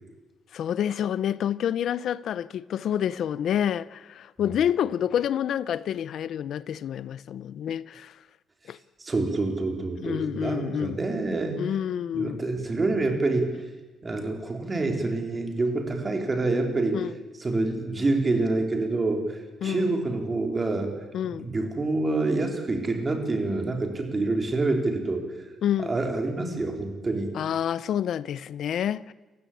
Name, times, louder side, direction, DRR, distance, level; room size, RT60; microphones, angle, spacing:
voice 1, 0.5-8.2 8.7-8.8 10.0-11.0 11.6-12.4 16.9-17.1 19.6-19.9 21.1-21.5 25.6-25.9 27.3-29.1, left 9 dB, 60° left, 0.7 m, -28 dB
voice 2, 9.0-11.6 12.1-13.7 14.0-17.0 17.4-20.9 21.2-25.2 25.9-27.3, right 2 dB, 20° right, 3.6 m, -27 dB
29.5 x 15.5 x 8.5 m
cardioid pair, 155°, 0 cm